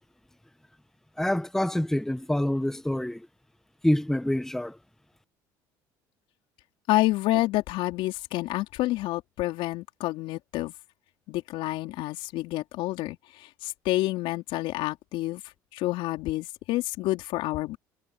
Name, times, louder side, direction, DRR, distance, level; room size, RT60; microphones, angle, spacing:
voice 1, 1.2-3.3 3.8-4.8, left 1 dB, 5° left, 1.4 m, -26 dB
voice 2, 6.9-10.7 11.3-15.4 15.7-17.8, left 18 dB, 70° left, 4.2 m, -28 dB
hypercardioid pair, 70°, 9 cm